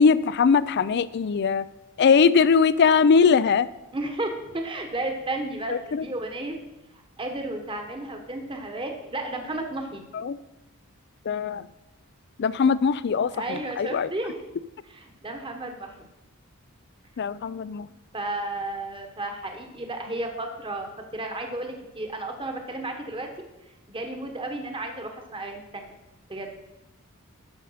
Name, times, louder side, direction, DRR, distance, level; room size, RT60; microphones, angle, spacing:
voice 1, 0.0-1.6 2.0-3.7 5.7-6.1 10.1-10.4 11.3-11.7 12.4-14.1 17.2-17.9, left 5 dB, 50° left, 17 dB, 0.4 m, -21 dB
voice 2, 3.9-6.6 7.2-10.0 13.3-14.4 14.8-16.1 18.1-23.3 23.9-25.9 26.3-26.5, right 2 dB, 25° right, 4 dB, 1.2 m, -33 dB
13.0 x 5.3 x 5.7 m, 0.96 s
head